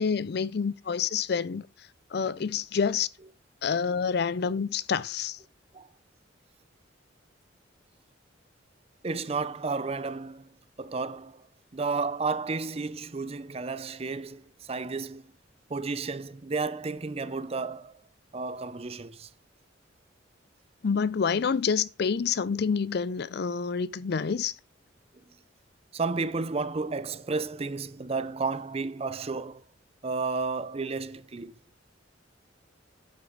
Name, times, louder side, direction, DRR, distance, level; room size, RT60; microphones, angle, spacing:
voice 1, 0.0-1.7 2.1-3.1 3.6-5.4 20.8-24.5, left 6 dB, 55° left, 0.5 m, -28 dB
voice 2, 9.0-10.4 10.8-11.4 11.7-15.2 15.7-18.0 18.3-19.3 25.9-29.6 30.0-31.5, right 4 dB, 30° right, 0.5 m, -32 dB
8.8 x 8.5 x 3.9 m
head